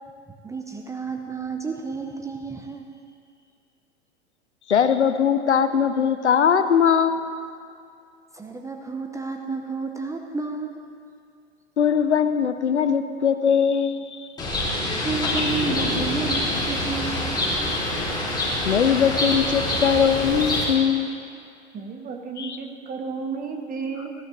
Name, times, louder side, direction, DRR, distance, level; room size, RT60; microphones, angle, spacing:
voice 1, 0.4-2.9 8.3-10.8 15.0-17.8, right 4 dB, 10° right, 3 dB, 0.7 m, -31 dB
voice 2, 4.7-7.4 11.8-14.3 18.6-21.2 22.4-22.6, left 7 dB, 80° left, 10 dB, 0.7 m, -21 dB
Bird, 14.4-20.6, left 1 dB, 10° left, 3.3 m, -25 dB
voice 3, 21.7-24.1, right 5 dB, 25° right, 4 dB, 1.4 m, -33 dB
18.0 x 14.0 x 2.7 m, 2.3 s
figure-of-eight pair, 95°, 34 cm